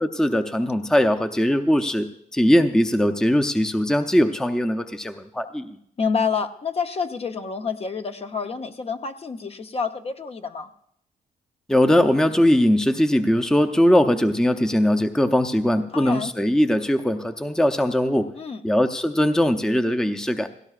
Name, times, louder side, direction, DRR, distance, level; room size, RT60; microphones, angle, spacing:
voice 1, 0.2-2.1 2.3-5.8 11.7-18.3 18.6-20.5, equal, 5° left, 7 dB, 0.6 m, -20 dB
voice 2, 6.0-10.7 15.9-16.3 18.3-18.6, left 5 dB, 40° left, 7 dB, 0.8 m, -28 dB
17.0 x 16.5 x 2.5 m, 0.70 s
cardioid pair, 85°, 15 cm